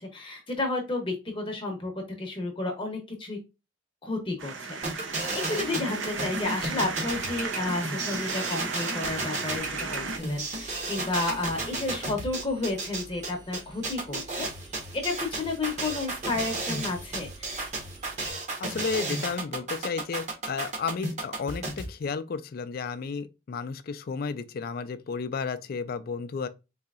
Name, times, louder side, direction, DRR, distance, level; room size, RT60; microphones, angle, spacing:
voice 1, 0.0-3.4 4.0-14.5 14.9-17.7, left 2 dB, 30° left, 0.7 m, -32 dB
sound 1, 4.4-10.2, right 4 dB, 80° right, 0.7 m, -35 dB
sound 2, 4.8-21.8, right 2 dB, 40° right, 0.9 m, -33 dB
Engine, 9.6-18.3, right 3 dB, 20° right, 0.5 m, -50 dB
voice 2, 18.6-26.5, left 5 dB, 50° left, 0.4 m, -33 dB
4.0 x 2.7 x 2.4 m
head